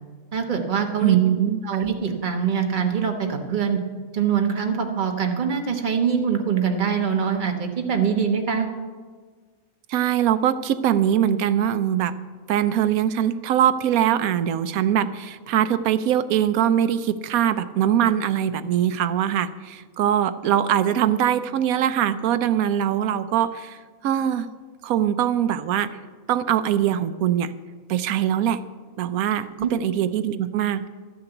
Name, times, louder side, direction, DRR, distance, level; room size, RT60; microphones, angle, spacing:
voice 1, 0.3-1.2 1.6-3.8 4.1-8.7 29.6-29.7, right 7 dB, 35° right, 4 dB, 1.2 m, -23 dB
voice 2, 1.0-1.6 9.9-12.1 12.5-23.8 24.0-24.5 24.8-26.0 26.3-27.5 27.9-28.6 29.0-30.9, right 10 dB, 75° right, 12 dB, 1.1 m, -22 dB
12.5 x 6.8 x 8.0 m, 1.5 s
omnidirectional pair, 1.6 m